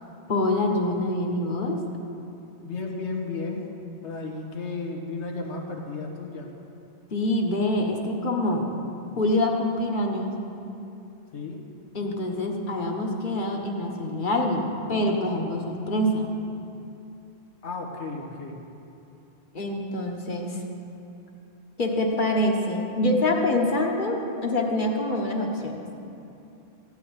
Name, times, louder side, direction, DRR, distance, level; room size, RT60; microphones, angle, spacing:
voice 1, 0.3-1.8 7.1-8.7 9.2-10.3 11.9-16.3 19.5-20.6 21.8-25.8, left 1 dB, 45° left, 1 dB, 1.5 m, -25 dB
voice 2, 2.6-3.6 4.0-6.5 11.3-11.6 17.6-18.6, left 3 dB, 85° left, 0 dB, 1.6 m, -33 dB
15.0 x 5.7 x 9.6 m, 2.8 s
omnidirectional pair, 1.1 m